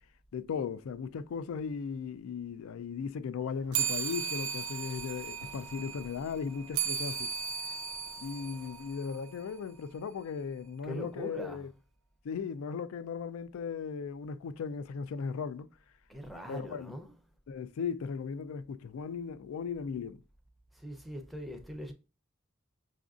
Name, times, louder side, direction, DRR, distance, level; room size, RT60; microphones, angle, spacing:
voice 1, 0.3-7.3 8.2-11.7 12.2-15.7 16.5-16.9 17.5-20.2, left 6 dB, 85° left, 0.3 m, -37 dB
sound 1, 3.7-9.6, right 7 dB, 90° right, 0.5 m, -36 dB
voice 2, 10.8-11.7 16.1-17.3 20.7-21.9, equal, ahead, 0.5 m, -42 dB
5.9 x 2.5 x 2.4 m
head